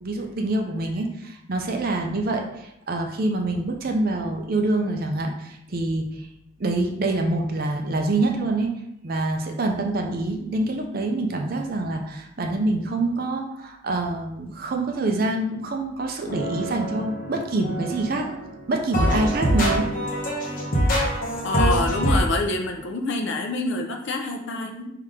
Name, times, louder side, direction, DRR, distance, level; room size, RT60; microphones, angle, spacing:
voice 1, 0.0-6.3 6.6-8.7 9.0-18.3 18.7-19.9, right 2 dB, 45° right, 3 dB, 0.5 m, -26 dB
sound 1, 16.3-18.5 18.9-22.2, equal, 40° left, 1.0 m, -24 dB
voice 2, 21.4-24.9, left 2 dB, 60° left, 3 dB, 0.5 m, -26 dB
3.7 x 2.8 x 4.7 m, 0.81 s
head